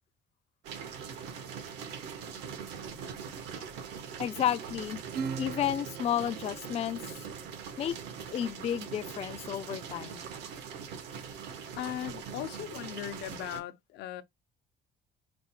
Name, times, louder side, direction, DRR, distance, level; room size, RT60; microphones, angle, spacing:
sound 1, 0.6-13.6, right 7 dB, 90° right, 1.5 m, -42 dB
voice 1, 4.2-5.0 5.4-7.0 7.8-8.0 8.3-10.2, left 10 dB, 40° left, 0.4 m, -32 dB
Acoustic guitar / Strum, 5.1-8.0, right 6 dB, 70° right, 0.9 m, -41 dB
voice 2, 11.8-14.2, left 12 dB, 80° left, 0.7 m, -38 dB
5.1 x 2.3 x 2.9 m
cardioid pair, 110°, 17 cm